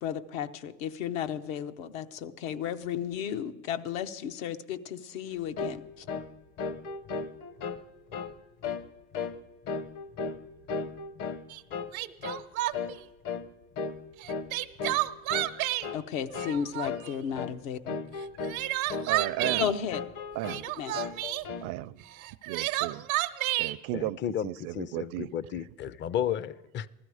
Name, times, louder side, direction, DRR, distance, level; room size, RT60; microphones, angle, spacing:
voice 1, 0.0-6.1 15.9-17.9 19.6-20.0 20.8-21.1, left 8 dB, 75° left, 0.9 m, -34 dB
sound 1, 5.6-5.8 6.1-6.3 6.6-7.8 8.1-8.4 8.6-8.9 9.1-9.4 9.7-10.4 10.7-11.4 11.7-11.9 12.2-12.4 12.7-13.0 13.2-13.5 13.8-14.0 14.3-14.5 14.8-15.0 15.3-15.5 15.8-16.0 16.3-16.6 16.8-17.1 17.3-17.5 17.9-18.6 18.9-19.6 19.9-20.6 20.9-21.7, left 5 dB, 50° left, 0.9 m, -35 dB
Crying sobbing, 11.5-11.6 11.9-13.0 14.2-15.9 16.3-17.1 18.2-19.7 20.4-21.4 22.2-23.7, right 17 dB, 85° right, 0.8 m, -30 dB
voice 2, 19.1-19.7 20.4-20.7 21.6-22.0 22.5-23.1 23.6-25.3, right 18 dB, 55° right, 0.5 m, -34 dB
voice 3, 23.9-26.9, left 9 dB, 30° left, 0.4 m, -33 dB
15.0 x 13.0 x 4.8 m
supercardioid pair, 100°, 41 cm